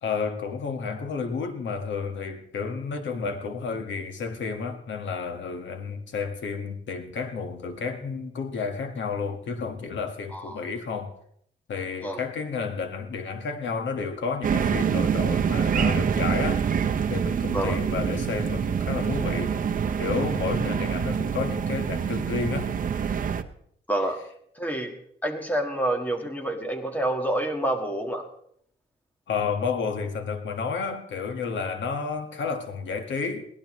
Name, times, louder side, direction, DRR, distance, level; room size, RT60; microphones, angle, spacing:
voice 1, 0.0-11.1 11.7-16.7 17.1-19.6 20.0-22.7 29.3-33.5, left 5 dB, 85° left, 1.7 m, -31 dB
sound 1, 14.4-23.4, right 7 dB, 45° right, 0.8 m, -26 dB
voice 2, 23.9-24.2 24.6-24.9 25.2-28.2, right 1 dB, 10° left, 1.7 m, -28 dB
22.0 x 18.5 x 3.2 m
wide cardioid pair, 180°, 19 cm